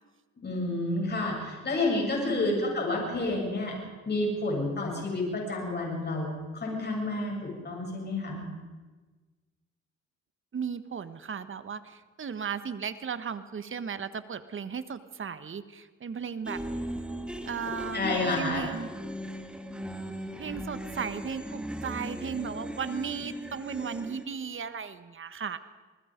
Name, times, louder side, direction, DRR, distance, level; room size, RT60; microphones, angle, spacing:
voice 1, 0.4-3.8 4.1-8.4 17.9-18.7, left 2 dB, 35° left, -1 dB, 8.0 m, -30 dB
voice 2, 2.2-2.7 10.5-16.6 17.5-18.9 20.4-25.6, right 6 dB, 40° right, 12 dB, 1.4 m, -36 dB
sound 1, 16.4-24.2, equal, 5° right, 2.0 m, -38 dB
27.0 x 20.0 x 5.2 m, 1.3 s
cardioid pair, 90°, 30 cm